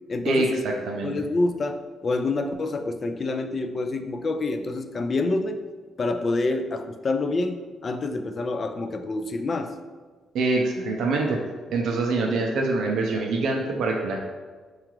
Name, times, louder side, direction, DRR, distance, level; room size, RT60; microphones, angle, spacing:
voice 1, 0.1-0.6 1.0-5.6 6.0-9.7, left 2 dB, 40° left, 7 dB, 0.3 m, -27 dB
voice 2, 10.3-11.4 11.7-14.2, right 3 dB, 75° right, 1 dB, 0.4 m, -24 dB
4.7 x 2.4 x 3.0 m, 1.4 s
cardioid pair, 90°, 0 cm